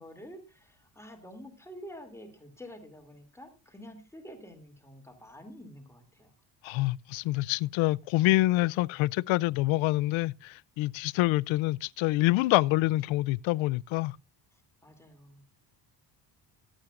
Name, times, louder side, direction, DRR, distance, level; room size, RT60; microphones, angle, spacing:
voice 1, 0.0-6.3 14.5-15.4, equal, 5° left, 2.7 m, -48 dB
voice 2, 6.6-14.2, left 18 dB, 80° left, 0.5 m, -26 dB
22.5 x 8.8 x 2.5 m
cardioid pair, 150°, 46 cm